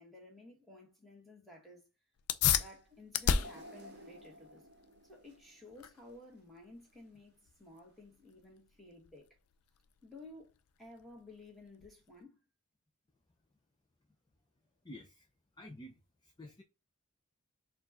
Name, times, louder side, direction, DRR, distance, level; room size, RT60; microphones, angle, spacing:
voice 1, 0.0-1.9 2.4-4.7 5.1-9.3 10.0-12.4, left 2 dB, ahead, 1.6 m, -54 dB
sound 1, 2.2-12.2, left 8 dB, 75° left, 0.4 m, -37 dB
sound 2, 3.3-6.4 6.9-7.0 8.0-8.1, equal, 50° right, 0.8 m, -54 dB
voice 2, 14.8-15.3 15.5-16.6, left 1 dB, 20° left, 0.5 m, -51 dB
4.4 x 2.5 x 4.1 m
head